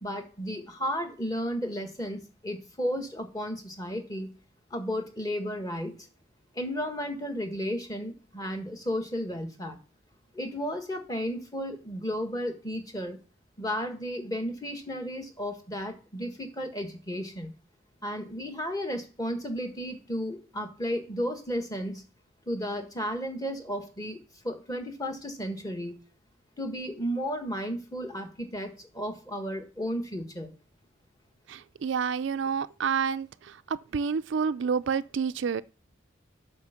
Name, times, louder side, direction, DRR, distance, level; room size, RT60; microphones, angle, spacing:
voice 1, 0.0-4.3 4.7-5.9 6.5-9.8 10.3-13.2 13.6-17.5 18.0-22.0 22.5-24.2 24.4-25.9 26.6-30.5, equal, 20° left, 1.5 m, -33 dB
voice 2, 31.5-35.6, right 6 dB, 60° right, 0.4 m, -29 dB
8.0 x 5.8 x 6.9 m
head